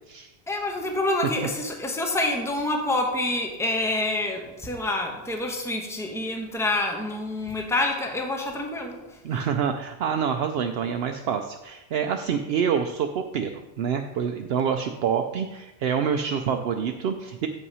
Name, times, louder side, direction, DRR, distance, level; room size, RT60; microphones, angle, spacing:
voice 1, 0.5-9.2, left 2 dB, 5° left, 2 dB, 0.9 m, -27 dB
voice 2, 9.2-17.5, right 7 dB, 70° right, 5 dB, 0.8 m, -27 dB
8.1 x 5.6 x 5.5 m, 1.0 s
omnidirectional pair, 1.1 m